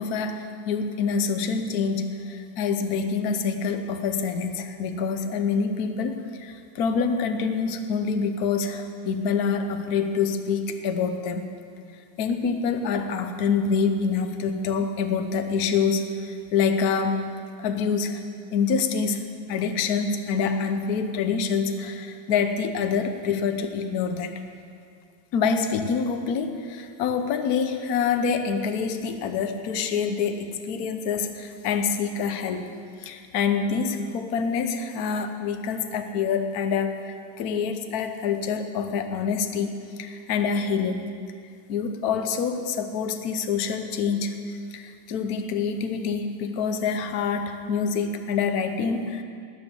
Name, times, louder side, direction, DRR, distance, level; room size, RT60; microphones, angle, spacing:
voice 1, 0.0-11.5 12.2-17.2 17.6-18.2 18.5-24.3 25.3-32.7 33.0-41.1 41.7-49.2, left 5 dB, 60° left, 7 dB, 1.2 m, -26 dB
19.0 x 7.0 x 7.0 m, 2.3 s
omnidirectional pair, 2.2 m